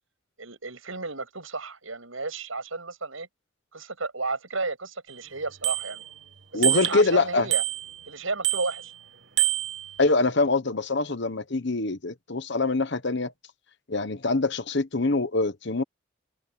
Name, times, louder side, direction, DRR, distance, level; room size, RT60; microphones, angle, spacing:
voice 1, 0.4-3.3 3.7-6.1 6.5-7.6 8.1-8.9, right 3 dB, 75° right, 7.1 m, -33 dB
Bicycle bell, 5.1-5.2 5.6-6.2 6.6-7.1 7.5-8.1 8.4-9.0 9.4-10.1, right 14 dB, 55° right, 1.4 m, -27 dB
voice 2, 6.5-7.5 10.0-13.3 13.9-15.8, left 3 dB, 55° left, 1.2 m, -24 dB
head